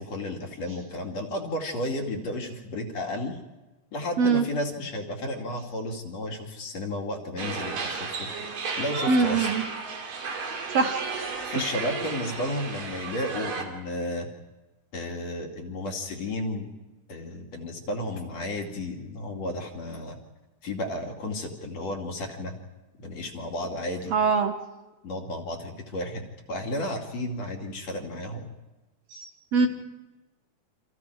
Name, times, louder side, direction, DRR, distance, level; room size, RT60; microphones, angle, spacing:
voice 1, 0.0-3.4 3.9-8.3 8.8-9.5 11.5-14.3 14.9-16.7 17.1-20.2 20.6-22.6 23.0-24.1 25.0-28.5 29.6-29.7, left 1 dB, 50° left, 1 dB, 3.6 m, -33 dB
sound 1, 7.4-13.6, right 4 dB, 80° right, 4.6 m, -33 dB
voice 2, 9.1-9.6 10.7-11.0 24.1-24.5 29.1-29.7, right 4 dB, 60° right, 5 dB, 2.2 m, -23 dB
29.5 x 26.5 x 4.9 m, 1.1 s
omnidirectional pair, 3.8 m